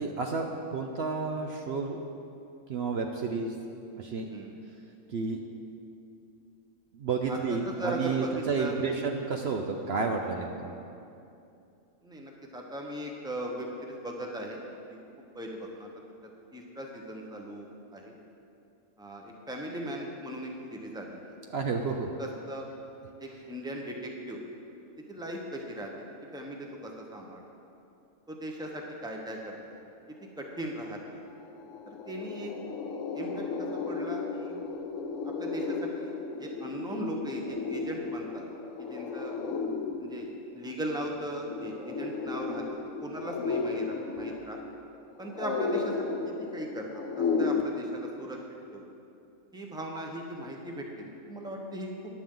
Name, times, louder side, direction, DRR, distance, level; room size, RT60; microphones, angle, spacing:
voice 1, 0.0-2.0 2.7-3.5 4.0-4.3 5.1-5.4 6.9-10.7 21.5-22.1, right 4 dB, 60° right, 3 dB, 0.9 m, -31 dB
voice 2, 7.3-9.0 12.0-15.0 15.3-15.9 16.5-17.7 17.9-18.1 19.0-21.3 22.2-22.7 23.2-24.4 25.1-25.9 26.3-27.4 28.3-29.6 30.4-31.2 31.9-32.5 33.1-34.6 35.4-36.1 36.4-38.4 38.9-39.3 40.0-40.3 40.5-42.6 43.0-44.6 45.2-46.9 47.2-48.4 48.7-48.8 49.5-51.9, right 1 dB, 5° right, 0 dB, 1.0 m, -38 dB
sound 1, 31.0-31.1 31.4-47.6, left 4 dB, 75° left, 1.2 m, -34 dB
14.5 x 10.5 x 3.9 m, 2.7 s
omnidirectional pair, 1.4 m